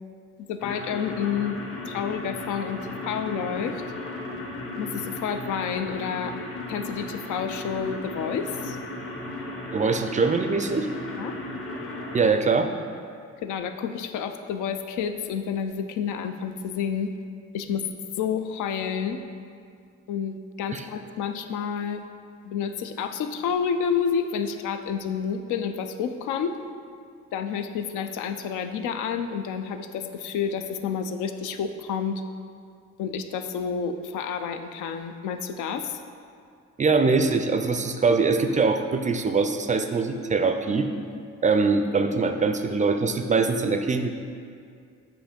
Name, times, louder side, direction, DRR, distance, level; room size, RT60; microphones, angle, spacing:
voice 1, 0.5-1.6 1.9-3.8 4.8-6.3 6.7-8.8 11.2-11.3 13.4-17.1 17.5-17.8 18.2-19.2 20.1-22.0 22.4-26.6 27.3-32.2 33.0-36.0, left 7 dB, 80° left, 8 dB, 0.5 m, -29 dB
sound 1, 0.6-12.3, left 2 dB, 45° left, 1.0 m, -35 dB
voice 2, 9.7-10.9 12.1-12.7 20.7-20.8 36.8-40.9 41.4-44.1, right 4 dB, 25° right, 7 dB, 0.3 m, -23 dB
7.8 x 2.6 x 5.1 m, 2.3 s
cardioid pair, 90°, 30 cm